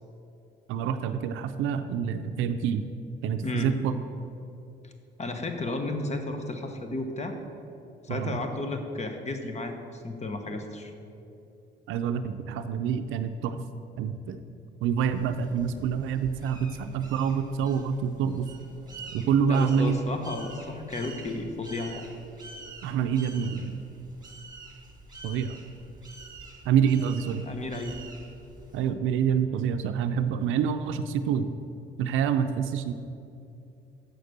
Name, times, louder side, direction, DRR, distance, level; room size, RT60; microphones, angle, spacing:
voice 1, 0.7-2.9 3.2-3.9 8.1-8.4 11.9-13.6 14.0-14.4 14.8-18.5 19.1-20.0 22.8-23.8 25.2-25.6 26.7-27.4 28.7-31.5 32.0-32.9, right 7 dB, 90° right, 8 dB, 0.5 m, -27 dB
voice 2, 3.4-3.7 4.8-4.9 5.2-7.3 8.0-10.9 19.1-19.2 19.5-22.1 27.5-28.0, left 2 dB, 35° left, 5 dB, 1.2 m, -33 dB
sound 1, 15.0-28.9, right 3 dB, 20° right, 2.0 m, -47 dB
8.0 x 6.6 x 6.6 m, 2.7 s
cardioid pair, 90°, 20 cm